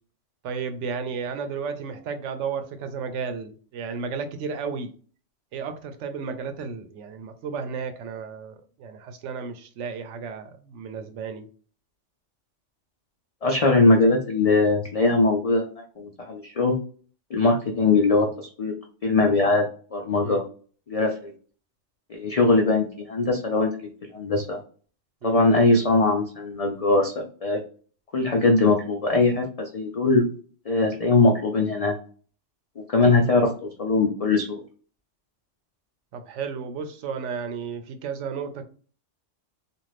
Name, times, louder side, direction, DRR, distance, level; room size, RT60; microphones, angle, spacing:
voice 1, 0.4-4.9 5.5-11.5 20.2-20.4 25.2-25.5 36.1-38.6, right 5 dB, 80° right, 0.9 m, -33 dB
voice 2, 13.4-15.7 16.0-16.7 17.3-18.7 19.0-19.6 19.9-20.4 20.9-21.3 22.1-24.6 25.2-27.6 28.1-30.2 30.7-31.9 32.8-34.6, left 3 dB, 60° left, 0.3 m, -21 dB
2.6 x 2.4 x 3.1 m
omnidirectional pair, 1.2 m